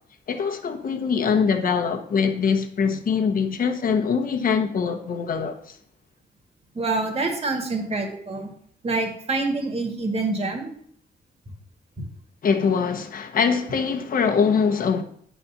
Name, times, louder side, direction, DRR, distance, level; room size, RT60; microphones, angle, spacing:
voice 1, 0.3-5.8 12.4-15.0, left 6 dB, 50° left, 1.2 m, -23 dB
voice 2, 6.7-8.5 8.8-10.7, right 3 dB, 35° right, 2.0 m, -26 dB
10.5 x 4.3 x 7.3 m
wide cardioid pair, 155°, 18 cm